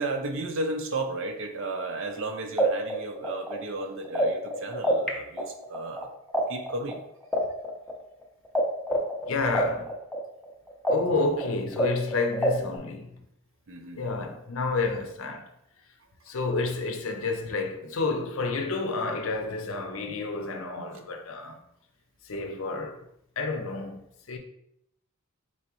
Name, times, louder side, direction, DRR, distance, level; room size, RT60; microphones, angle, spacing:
voice 1, 0.0-6.1 6.5-7.0 13.7-14.0, right 2 dB, 60° right, 0.6 m, -33 dB
sound 1, 2.2-2.3 2.6-5.1 5.4-8.6 8.9-12.8, right 1 dB, ahead, 0.5 m, -27 dB
voice 2, 9.3-9.9 10.9-13.1 13.9-15.5 16.3-21.6 22.3-23.0 23.4-24.0 24.3-24.4, left 3 dB, 65° left, 0.6 m, -30 dB
4.2 x 3.5 x 2.9 m
head